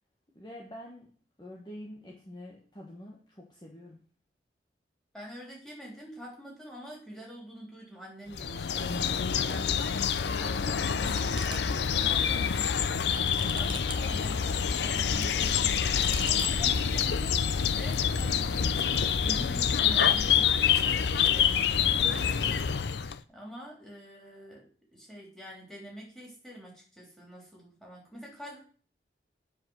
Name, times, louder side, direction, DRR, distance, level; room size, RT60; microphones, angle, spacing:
voice 1, 0.3-1.1 1.4-4.0, left 1 dB, 25° left, -2 dB, 1.3 m, -46 dB
voice 2, 5.1-17.4 17.7-22.6 23.3-28.6, equal, 5° left, -3 dB, 3.3 m, -46 dB
sound 1, 8.3-23.2, left 7 dB, 80° left, 0.5 m, -27 dB
sound 2, 10.3-10.6 11.0-11.6 12.1-14.0 14.8-15.2 15.8-16.5, right 4 dB, 30° right, 0.8 m, -42 dB
9.4 x 5.2 x 6.4 m, 0.43 s
head